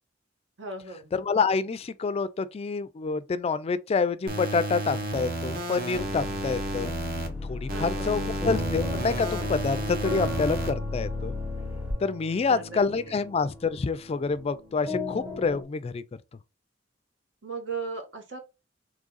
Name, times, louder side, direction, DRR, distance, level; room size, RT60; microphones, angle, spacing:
voice 1, 0.6-1.1 7.7-8.3 12.5-13.2 17.4-18.4, right 4 dB, 75° right, 1.4 m, -37 dB
voice 2, 1.1-6.9 7.4-11.3 12.0-16.0, left 4 dB, 30° left, 0.3 m, -27 dB
sound 1, 4.3-7.3 7.7-10.7, right 1 dB, 50° right, 1.1 m, -32 dB
sound 2, 4.9-15.6, left 1 dB, 25° right, 1.1 m, -38 dB
sound 3, 6.0-11.9, left 3 dB, 5° right, 0.6 m, -36 dB
3.7 x 3.2 x 3.9 m
head